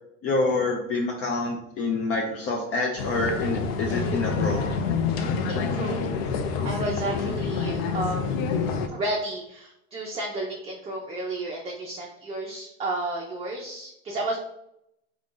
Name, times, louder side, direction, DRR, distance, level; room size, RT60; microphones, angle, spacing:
voice 1, 0.2-4.6, left 3 dB, 50° left, 0 dB, 0.7 m, -27 dB
sound 1, 3.0-8.9, left 5 dB, 85° left, 0.6 m, -27 dB
voice 2, 5.5-6.1 6.6-8.3 8.9-14.4, right 2 dB, 20° right, -2 dB, 0.5 m, -32 dB
3.7 x 2.3 x 3.7 m, 0.78 s
supercardioid pair, 130°, 31 cm